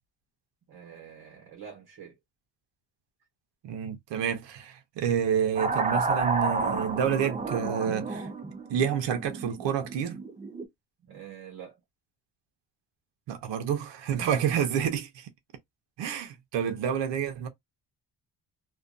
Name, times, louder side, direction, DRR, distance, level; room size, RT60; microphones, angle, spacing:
voice 1, 0.7-2.2 11.0-11.8, right 8 dB, 65° right, 1.1 m, -46 dB
voice 2, 3.6-8.3 8.7-10.2 13.3-15.3 16.0-17.5, right 8 dB, 80° right, 0.7 m, -29 dB
sound 1, 5.6-10.7, right 3 dB, 20° right, 0.4 m, -31 dB
2.5 x 2.2 x 2.4 m
cardioid pair, 120°, 42 cm